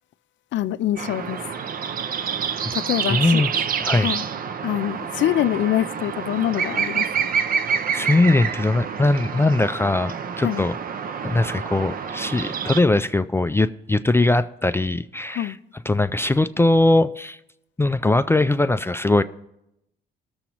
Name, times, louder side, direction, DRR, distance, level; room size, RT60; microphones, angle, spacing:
voice 1, 0.5-1.5 2.7-3.4 4.0-4.2 4.6-7.1 10.4-10.6 15.3-15.6, left 12 dB, 70° left, 0.5 m, -24 dB
sound 1, 1.0-12.8, right 7 dB, 45° right, 0.5 m, -27 dB
voice 2, 3.1-4.1 7.9-10.8 11.2-15.6 15.9-17.4 17.8-19.2, left 2 dB, 10° left, 0.3 m, -20 dB
19.5 x 7.1 x 3.0 m
cardioid pair, 90°, 20 cm